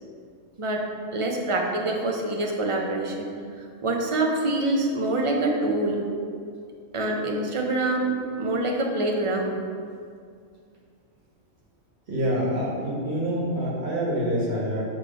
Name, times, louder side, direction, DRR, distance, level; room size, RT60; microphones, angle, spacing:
voice 1, 0.6-3.3 3.8-6.0 6.9-9.6, right 2 dB, 30° right, 1 dB, 0.6 m, -25 dB
voice 2, 12.1-14.8, equal, 50° right, -4 dB, 1.7 m, -26 dB
8.1 x 3.2 x 5.5 m, 2.2 s
omnidirectional pair, 1.4 m